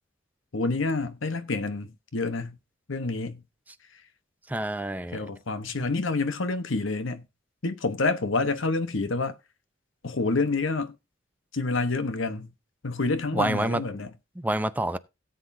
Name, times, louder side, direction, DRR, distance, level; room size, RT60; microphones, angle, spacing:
voice 1, 0.5-2.6 2.9-3.4 5.1-7.2 7.6-9.3 10.0-11.0 11.5-12.5 12.8-14.1, left 3 dB, 70° left, 1.0 m, -28 dB
voice 2, 4.5-5.2 13.3-13.8 14.4-15.0, right 1 dB, 10° right, 0.5 m, -27 dB
17.5 x 7.9 x 2.7 m
head